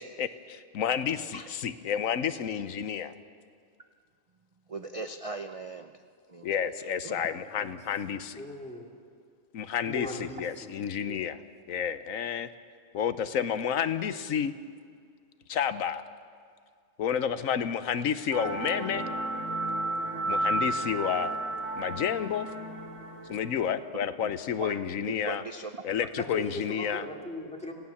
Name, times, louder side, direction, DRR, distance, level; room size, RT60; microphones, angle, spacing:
voice 1, 0.0-3.1 6.4-8.4 9.5-11.4 11.7-12.5 12.9-14.5 15.5-16.0 17.0-19.0 20.3-21.3 21.8-22.5 23.3-25.4 25.8-27.0, left 8 dB, 85° left, 12 dB, 1.2 m, -30 dB
voice 2, 4.7-6.0 6.3-6.5 7.0-7.2 24.2-24.3 24.6-24.7 25.1-25.7, right 3 dB, 35° right, 7 dB, 0.6 m, -38 dB
voice 3, 7.1-8.9 9.9-11.2 26.2-27.7, equal, 5° left, 0 dB, 2.7 m, -40 dB
sound 1, 18.3-23.7, right 2 dB, 70° right, 2.8 m, -32 dB
27.0 x 17.0 x 7.2 m, 2.1 s
omnidirectional pair, 1.4 m